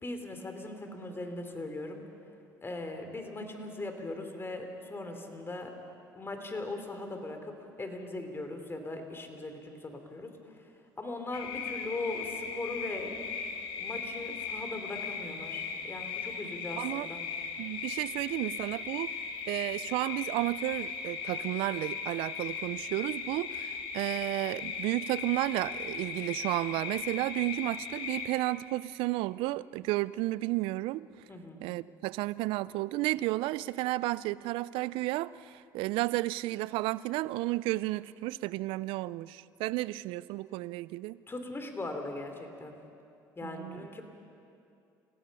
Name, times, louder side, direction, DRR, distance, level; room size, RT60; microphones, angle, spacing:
voice 1, 0.0-2.0 2.6-5.7 6.1-10.7 11.0-13.2 13.8-17.2 31.3-31.6 41.3-42.8 43.4-44.1, left 2 dB, 25° left, 5 dB, 3.6 m, -39 dB
sound 1, 11.3-28.3, left 5 dB, 65° left, 2.3 m, -38 dB
voice 2, 16.8-17.1 17.6-19.1 19.5-31.1 31.6-41.2 43.4-43.9, right 18 dB, 70° right, 19 dB, 0.5 m, -32 dB
29.5 x 16.5 x 5.6 m, 2.6 s
hypercardioid pair, 65°, 9 cm